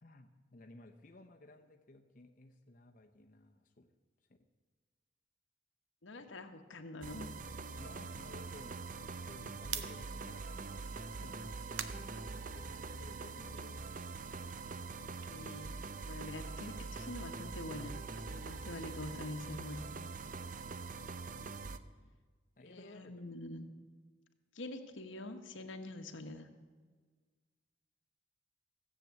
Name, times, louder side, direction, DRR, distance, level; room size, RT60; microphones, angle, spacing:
voice 1, 0.0-3.9 6.2-6.3 7.8-8.9 9.2-10.6 10.9-13.8 21.5-22.1 22.6-23.4, left 2 dB, 40° left, 3 dB, 0.8 m, -57 dB
voice 2, 6.0-7.3 15.3-15.8 16.0-19.8 22.6-23.7 24.5-26.5, left 2 dB, 80° left, 7 dB, 1.1 m, -45 dB
sound 1, 7.0-21.8, right 4 dB, 40° right, 0.5 m, -44 dB
sound 2, 9.7-13.0 13.4-16.4 16.7-20.8, right 9 dB, 75° right, 0.8 m, -50 dB
sound 3, 10.0-12.3 14.5-15.8, left 1 dB, ahead, 0.7 m, -61 dB
15.0 x 7.6 x 8.0 m, 1.5 s
head